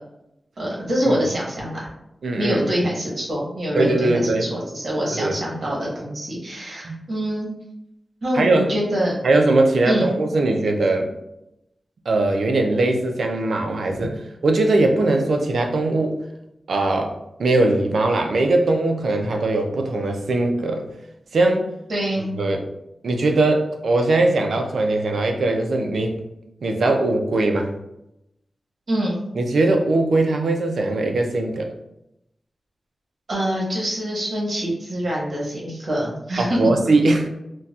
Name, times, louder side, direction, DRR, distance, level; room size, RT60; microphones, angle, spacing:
voice 1, 0.6-1.9 2.4-7.5 8.2-9.2 9.8-10.1 21.9-22.3 28.9-29.2 33.3-36.6, equal, 60° right, -4 dB, 1.2 m, -25 dB
voice 2, 2.2-2.8 3.7-4.5 5.1-5.4 6.8-7.0 8.3-8.7 9.2-11.1 12.1-16.2 16.7-17.1 17.4-20.8 21.3-21.7 22.2-22.7 23.0-26.2 26.6-27.7 29.3-31.7 36.4-37.3, right 2 dB, 85° right, 3 dB, 0.4 m, -20 dB
4.0 x 2.2 x 2.4 m, 0.85 s
wide cardioid pair, 75°, 0 cm